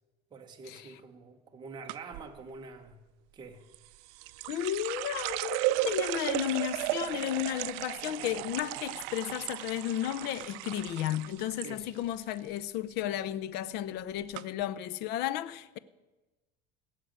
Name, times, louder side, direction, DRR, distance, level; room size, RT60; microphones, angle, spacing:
voice 1, 0.3-3.0 3.3-3.6 11.6-11.9, right 4 dB, 20° right, 1.3 m, -46 dB
sound 1, 1.9-2.3 3.7-11.7 12.0-12.6 12.9-13.2 13.9-14.0 14.3-14.4, right 19 dB, 75° right, 0.5 m, -35 dB
voice 2, 4.5-15.8, left 12 dB, 55° left, 0.6 m, -33 dB
17.0 x 6.6 x 8.8 m
cardioid pair, 145°, 20 cm